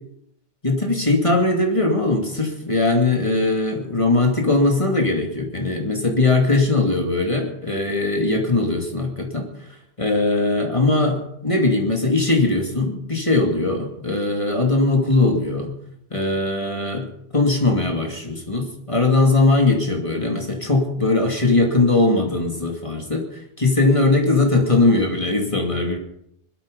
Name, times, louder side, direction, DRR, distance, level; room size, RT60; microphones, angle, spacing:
voice 1, 0.6-9.5 10.0-15.7 16.1-17.1 17.3-26.0, left 2 dB, 30° left, 2 dB, 2.6 m, -20 dB
19.5 x 13.0 x 5.4 m, 0.74 s
omnidirectional pair, 1.1 m